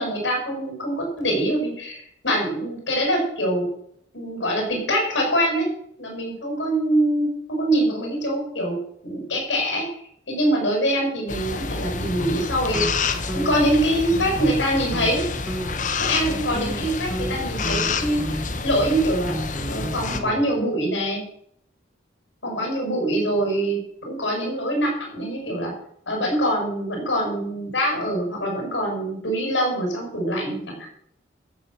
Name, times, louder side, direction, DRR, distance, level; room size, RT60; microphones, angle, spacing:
voice 1, 0.0-3.7 4.1-5.7 6.0-8.8 9.0-9.8 10.3-15.2 16.0-19.3 19.7-21.2 22.4-25.7 26.1-30.7, right 1 dB, 80° left, 1 dB, 6.4 m, -24 dB
sound 1, 11.3-20.2, left 4 dB, 40° left, 1.3 m, -28 dB
sound 2, 11.9-13.0 13.3-13.7 14.1-14.7 14.9-15.1 15.5-15.9 16.3-20.6, right 1 dB, 10° right, 1.3 m, -33 dB
13.5 x 7.8 x 7.5 m, 0.70 s
head